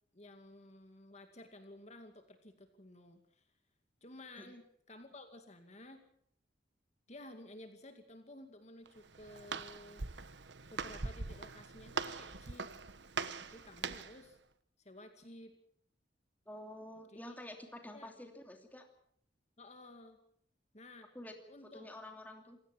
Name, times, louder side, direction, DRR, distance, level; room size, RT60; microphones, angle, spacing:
voice 1, 0.1-3.5 4.0-6.0 7.1-10.1 10.7-12.7 13.3-14.4 14.8-15.5 17.1-17.4 17.9-18.1 19.6-20.2 20.7-21.1 21.5-21.9, left 1 dB, 40° left, 6 dB, 2.3 m, -54 dB
Walk footsteps, 8.9-14.2, right 4 dB, 70° right, 1.2 m, -42 dB
voice 2, 16.5-18.9 21.1-21.3 21.6-22.6, left 1 dB, 10° left, 4 dB, 2.8 m, -49 dB
27.5 x 17.0 x 6.0 m, 0.65 s
head